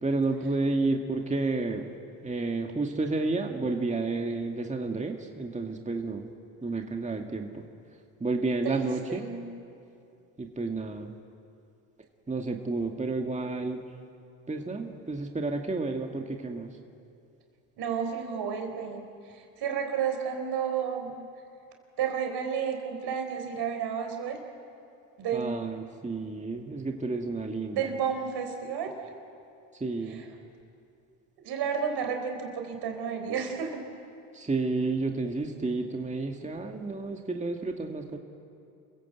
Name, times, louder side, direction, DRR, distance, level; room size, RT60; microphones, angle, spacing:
voice 1, 0.0-1.9 2.2-6.3 6.6-7.6 8.2-9.2 10.4-11.1 12.3-13.8 14.5-16.7 25.3-27.8 29.8-30.2 34.3-38.2, right 3 dB, 15° right, 3 dB, 1.9 m, -31 dB
voice 2, 8.6-9.4 17.8-19.0 19.3-21.1 22.0-24.4 25.2-25.8 27.7-28.9 30.1-30.3 31.4-33.8, right 7 dB, 65° right, 4 dB, 4.2 m, -31 dB
28.5 x 16.0 x 8.0 m, 2.6 s
supercardioid pair, 70°, 42 cm